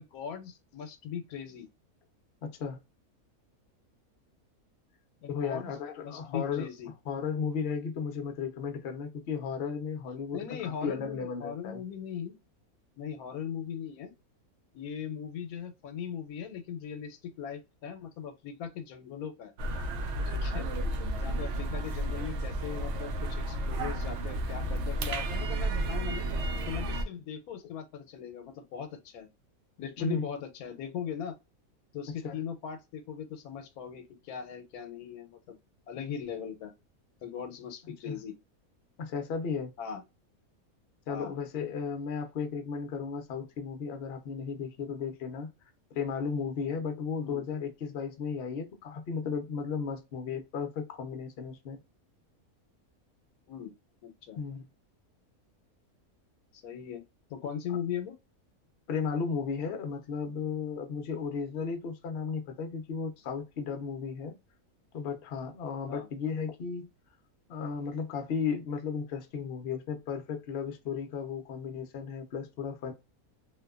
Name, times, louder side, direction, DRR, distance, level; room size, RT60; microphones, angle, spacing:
voice 1, 0.0-1.7 5.2-6.9 10.3-12.3 13.0-14.1 14.7-19.5 20.3-20.7 21.1-26.3 26.7-29.3 29.8-31.3 31.9-35.5 35.9-36.7 37.2-38.3 39.8-40.0 41.1-41.3 47.2-47.4 53.5-53.7 54.0-54.4 56.5-57.0 57.3-58.1 63.6-63.7 65.9-66.1, left 8 dB, 80° left, 1.1 m, -39 dB
voice 2, 2.4-2.8 5.3-6.7 7.1-11.8 30.0-30.3 32.2-32.4 38.0-38.2 39.0-39.7 41.1-45.5 45.9-51.8 54.4-54.7 58.9-64.3 64.9-66.9 67.5-72.9, left 6 dB, 55° left, 0.7 m, -35 dB
sound 1, 19.6-27.1, right 1 dB, 65° right, 0.7 m, -32 dB
2.8 x 2.2 x 2.3 m
omnidirectional pair, 1.6 m